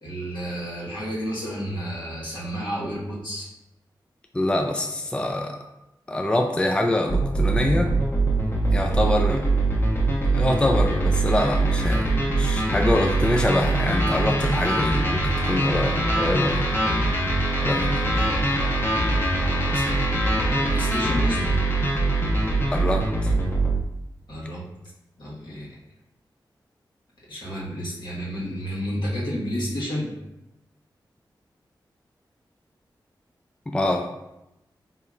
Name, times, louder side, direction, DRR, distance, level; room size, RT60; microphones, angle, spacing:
voice 1, 0.0-3.5 17.4-21.6 24.3-24.7 25.2-25.8 27.3-30.1, equal, 70° left, -6 dB, 1.3 m, -32 dB
voice 2, 4.3-5.6 6.1-7.9 8.7-9.4 10.2-16.6 17.7-17.8 22.7-23.3 33.7-34.0, left 1 dB, 10° left, 3 dB, 0.3 m, -25 dB
sound 1, 7.1-23.8, right 2 dB, 30° left, 0.9 m, -23 dB
4.2 x 2.8 x 2.4 m, 0.91 s
cardioid pair, 50°, 8 cm